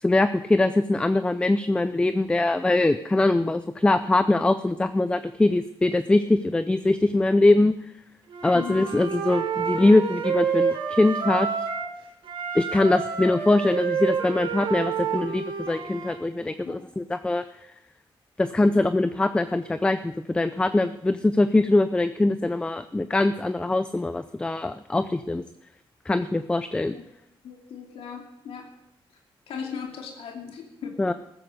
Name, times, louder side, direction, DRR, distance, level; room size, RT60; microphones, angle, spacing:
voice 1, 0.0-7.7 8.4-11.5 12.5-17.4 18.4-25.4 26.1-26.9 31.0-31.1, left 2 dB, 10° left, 11 dB, 0.5 m, -22 dB
Wind instrument woodwind instrument, 8.3-11.9 12.2-16.2, right 6 dB, 70° right, 3.4 m, -29 dB
voice 2, 8.5-8.9 16.6-16.8 26.9-27.0 27.4-28.7 29.5-31.0, left 7 dB, 90° left, 1 dB, 2.7 m, -37 dB
14.5 x 14.5 x 5.2 m, 0.82 s
wide cardioid pair, 135°, 10 cm